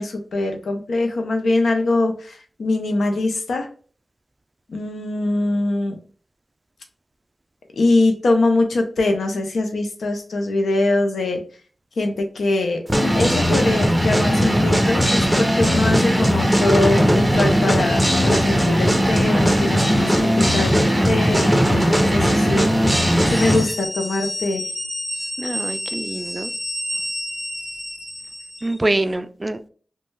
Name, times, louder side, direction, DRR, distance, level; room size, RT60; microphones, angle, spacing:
voice 1, 0.0-3.7 4.7-6.0 7.7-11.4 12.0-12.8 13.1-22.9 23.3-24.7, left 2 dB, 85° left, 5 dB, 0.6 m, -22 dB
sound 1, 12.9-23.7, equal, 10° right, 0.7 m, -18 dB
sound 2, 23.1-28.8, left 1 dB, 30° left, 1.1 m, -30 dB
voice 2, 25.4-26.5 28.6-29.7, right 2 dB, 30° right, 11 dB, 0.3 m, -25 dB
3.1 x 2.2 x 3.1 m, 0.42 s
cardioid pair, 45°, 0 cm